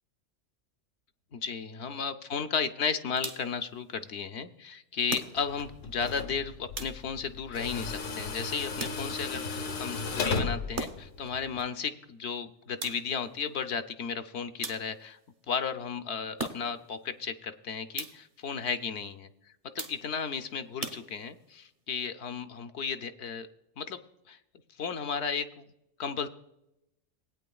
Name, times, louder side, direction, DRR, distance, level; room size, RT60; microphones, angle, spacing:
voice 1, 1.3-15.2 15.5-19.3 19.7-23.5 23.8-24.0 24.3-24.4 24.8-25.6 26.0-26.3, left 6 dB, 65° left, 9 dB, 0.8 m, -34 dB
sound 1, 3.2-3.7 5.1-5.7 6.7-7.3 8.8-9.4 10.7-11.3 12.8-13.3 14.6-15.2 16.4-16.9 17.9-18.4 19.8-20.3 20.8-21.5, right 3 dB, 50° right, 1.1 m, -40 dB
Tools, 5.4-11.6, left 4 dB, 90° left, 1.3 m, -36 dB
19.0 x 8.9 x 2.3 m, 0.87 s
omnidirectional pair, 1.3 m